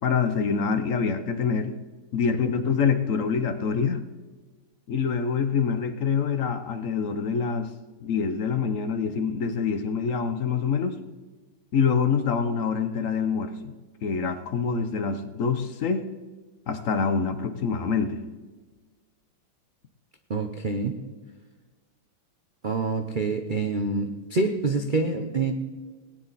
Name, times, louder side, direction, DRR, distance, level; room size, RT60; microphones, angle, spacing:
voice 1, 0.0-1.7 2.1-4.0 4.9-7.7 8.0-10.9 11.7-13.7 14.0-16.0 16.7-18.2, left 6 dB, 55° left, 10 dB, 0.9 m, -25 dB
voice 2, 20.3-21.0 22.6-25.5, right 3 dB, 60° right, 5 dB, 0.5 m, -26 dB
19.0 x 10.0 x 4.1 m, 1.3 s
omnidirectional pair, 2.2 m